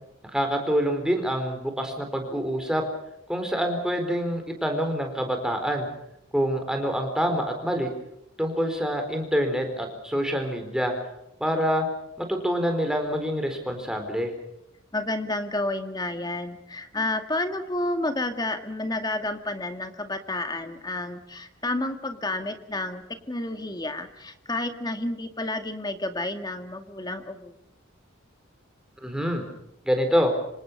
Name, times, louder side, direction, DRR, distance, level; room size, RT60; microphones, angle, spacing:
voice 1, 0.3-2.8 3.3-5.9 6.3-7.9 8.4-10.9 11.4-11.9 12.2-14.3 29.0-29.4 29.8-30.3, equal, 5° right, 4 dB, 4.4 m, -26 dB
voice 2, 14.9-27.6, left 2 dB, 20° left, 7 dB, 1.9 m, -30 dB
27.0 x 25.5 x 5.5 m, 0.81 s
head